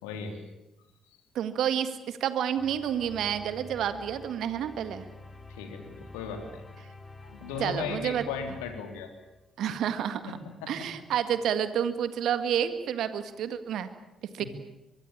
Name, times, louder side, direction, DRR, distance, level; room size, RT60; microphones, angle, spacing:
voice 1, 0.0-0.4 5.5-6.6 7.2-9.1 10.3-10.9 14.4-14.5, left 5 dB, 80° left, 6 dB, 3.5 m, -37 dB
voice 2, 1.4-5.1 7.6-8.3 9.6-10.4 10.7-13.9 14.3-14.4, right 9 dB, 65° right, 11 dB, 1.9 m, -29 dB
sound 1, 2.6-9.6, left 2 dB, 25° left, 4.4 m, -48 dB
23.5 x 23.5 x 8.8 m, 0.92 s
hypercardioid pair, 45°, 0 cm